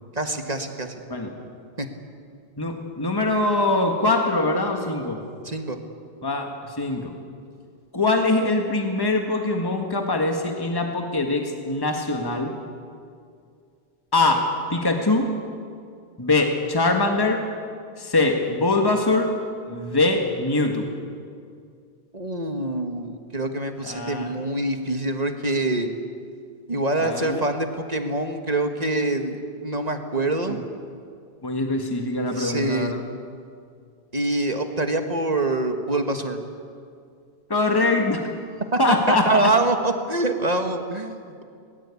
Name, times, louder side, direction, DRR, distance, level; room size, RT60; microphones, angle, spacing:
voice 1, 0.1-0.9 1.8-1.9 5.4-5.8 22.1-25.9 26.7-29.4 29.6-30.6 32.3-32.9 34.1-36.4 38.9-41.4, right 2 dB, 40° right, 5 dB, 1.7 m, -25 dB
voice 2, 2.6-5.2 6.2-7.1 7.9-12.5 14.1-15.3 16.2-17.4 18.0-19.3 19.7-20.9 23.8-24.3 27.0-27.4 30.5-30.6 31.4-33.0 37.5-38.2 38.8-39.5, left 2 dB, 20° left, 3 dB, 1.8 m, -23 dB
22.0 x 20.0 x 8.5 m, 2.3 s
omnidirectional pair, 1.1 m